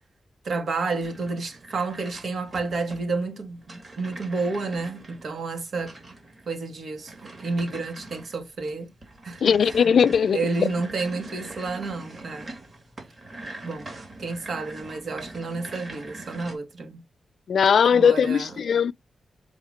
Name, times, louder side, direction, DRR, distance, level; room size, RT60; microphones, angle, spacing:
voice 1, 0.4-5.9 6.5-8.9 9.2-9.9 10.3-12.5 13.6-13.9 14.2-17.0 17.9-18.5, right 3 dB, 65° right, 1.8 m, -30 dB
sound 1, 1.0-16.5, right 2 dB, 40° right, 2.7 m, -43 dB
voice 2, 9.4-10.4 17.5-18.9, left 7 dB, 75° left, 0.3 m, -19 dB
7.1 x 3.9 x 5.1 m
wide cardioid pair, 95°, 0 cm